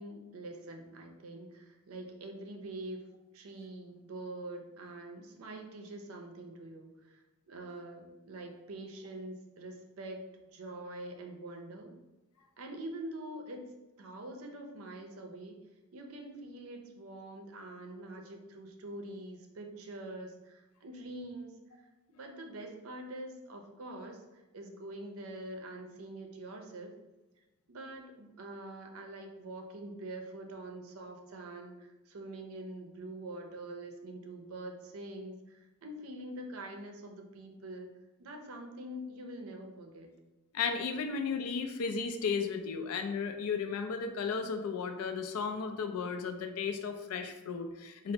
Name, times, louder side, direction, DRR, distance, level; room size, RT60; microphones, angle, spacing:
voice 1, 0.0-3.0 3.3-10.2 10.5-11.9 12.6-13.7 14.0-15.6 15.9-21.8 22.2-26.9 27.7-37.9 38.2-40.1, right 1 dB, 70° right, 3 dB, 0.5 m, -45 dB
voice 2, 40.5-48.1, left 5 dB, 85° left, 6 dB, 0.4 m, -34 dB
4.1 x 2.0 x 2.7 m, 1.1 s
head